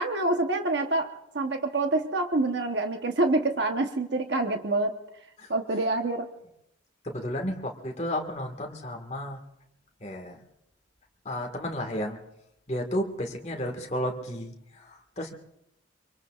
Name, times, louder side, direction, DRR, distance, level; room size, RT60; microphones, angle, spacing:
voice 1, 0.0-5.0 5.5-6.3, right 2 dB, 60° right, 5 dB, 1.0 m, -26 dB
voice 2, 7.0-9.4 10.0-10.4 11.3-12.2 12.7-14.5 14.8-15.3, equal, 35° left, 2 dB, 1.7 m, -32 dB
25.5 x 23.5 x 2.5 m, 0.81 s
head